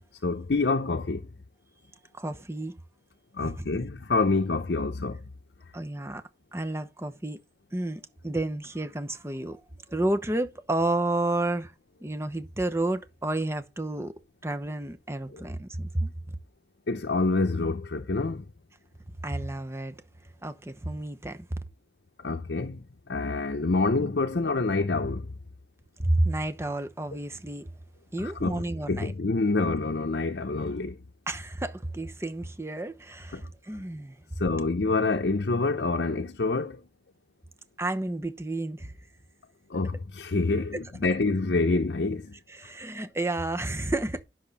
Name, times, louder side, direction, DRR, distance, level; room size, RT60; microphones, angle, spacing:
voice 1, 0.2-1.2 3.3-5.2 15.3-15.4 16.9-18.4 22.2-25.3 28.2-31.0 33.3-33.5 34.4-36.8 39.7-42.3, left 3 dB, 70° left, 0.7 m, -27 dB
voice 2, 2.1-2.7 3.4-3.5 5.7-6.2 6.5-7.4 7.7-9.6 9.9-11.7 12.0-14.1 14.4-16.1 19.2-19.9 20.4-21.5 26.0-27.7 28.1-29.1 31.3-34.2 37.8-38.9 42.5-44.2, right 2 dB, 15° right, 0.9 m, -30 dB
10.0 x 6.3 x 4.2 m
head